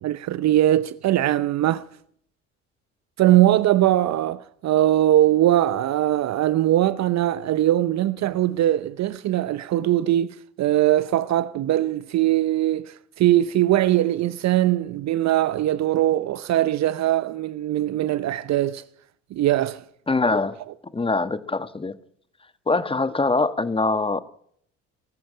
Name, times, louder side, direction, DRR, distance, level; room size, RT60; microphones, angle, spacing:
voice 1, 0.0-1.9 3.2-18.8 19.3-19.8, right 13 dB, 45° right, 0.9 m, -21 dB
voice 2, 20.1-20.6 20.9-22.0 22.7-24.2, left 3 dB, 15° left, 1.5 m, -23 dB
21.0 x 14.0 x 8.6 m
figure-of-eight pair, 55°, 37 cm